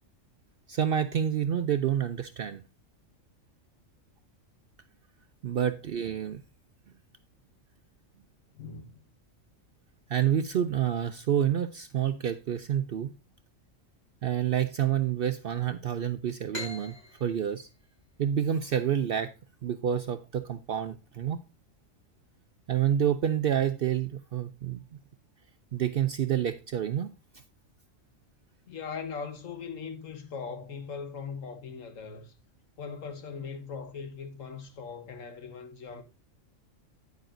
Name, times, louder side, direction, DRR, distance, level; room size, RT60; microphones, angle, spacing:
voice 1, 0.7-2.6 5.4-6.4 10.1-13.1 14.2-16.9 17.2-17.7 18.2-19.3 19.6-21.4 22.7-24.8 25.7-27.1, right 9 dB, 65° right, 0.6 m, -28 dB
voice 2, 8.5-9.0 28.7-32.3 32.8-36.0, left 5 dB, 75° left, 1.5 m, -40 dB
sound 1, 16.5-19.9, left 1 dB, 40° left, 4.2 m, -44 dB
9.5 x 9.0 x 2.6 m
omnidirectional pair, 1.4 m